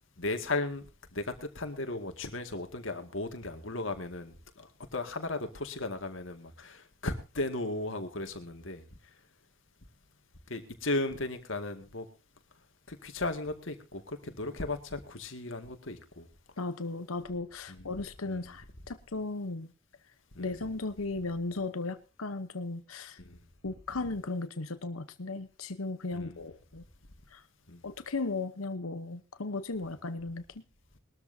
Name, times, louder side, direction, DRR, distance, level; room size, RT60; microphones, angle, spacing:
voice 1, 0.2-0.9 1.1-8.8 10.5-12.1 12.9-16.3 17.7-17.9 18.3-18.5 20.3-20.7 23.2-23.4 26.1-26.4 27.7-27.8, left 2 dB, 65° left, 2.2 m, -36 dB
voice 2, 16.6-19.7 20.4-23.2 23.6-26.8 27.3-27.4 27.8-30.6, left 3 dB, 80° left, 1.0 m, -36 dB
21.0 x 13.5 x 2.8 m
head